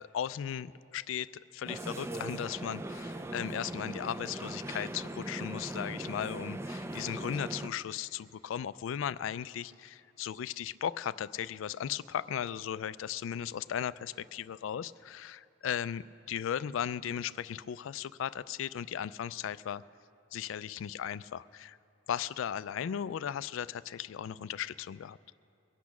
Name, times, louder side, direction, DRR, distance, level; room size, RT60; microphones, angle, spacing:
voice 1, 0.0-19.8 20.3-21.8 22.1-25.2, left 9 dB, 75° left, 17 dB, 0.3 m, -37 dB
sound 1, 1.7-7.7, right 1 dB, 15° right, 0.4 m, -40 dB
22.5 x 8.3 x 6.0 m, 2.7 s
head